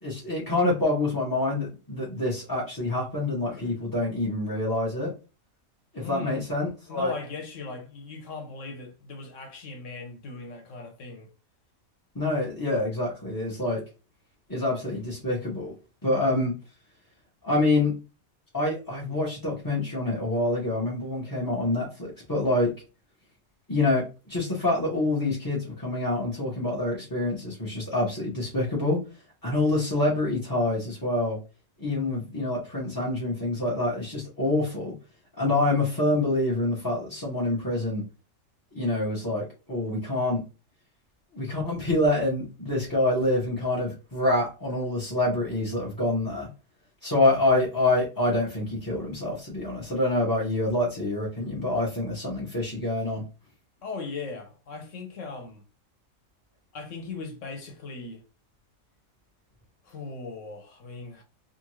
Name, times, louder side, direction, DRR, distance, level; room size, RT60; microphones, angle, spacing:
voice 1, 0.0-5.1 5.9-7.2 12.1-13.8 14.5-15.7 16.0-16.6 17.4-18.0 18.5-22.7 23.7-29.0 29.4-31.4 31.8-34.9 35.4-38.0 38.7-40.4 41.3-46.5 47.0-53.2, left 2 dB, 25° left, 0.5 m, -26 dB
voice 2, 6.0-6.4 6.9-11.3 53.8-55.6 56.7-58.2 59.8-61.2, left 3 dB, 65° left, 1.1 m, -38 dB
2.6 x 2.4 x 3.0 m
omnidirectional pair, 1.5 m